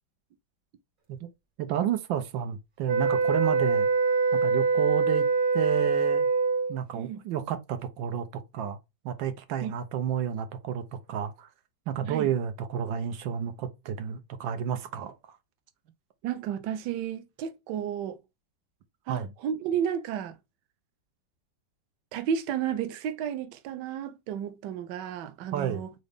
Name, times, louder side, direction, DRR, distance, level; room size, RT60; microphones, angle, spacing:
voice 1, 1.6-3.9 4.3-5.3 5.5-6.3 6.7-8.8 9.0-11.5 11.9-15.4 19.1-19.3 25.5-25.8, right 9 dB, 90° right, 1.5 m, -31 dB
sound 1, 2.8-6.8, right 4 dB, 40° right, 0.8 m, -24 dB
voice 2, 16.2-18.2 19.1-20.4 22.1-25.9, right 8 dB, 70° right, 1.3 m, -32 dB
3.9 x 3.9 x 3.4 m
omnidirectional pair, 2.0 m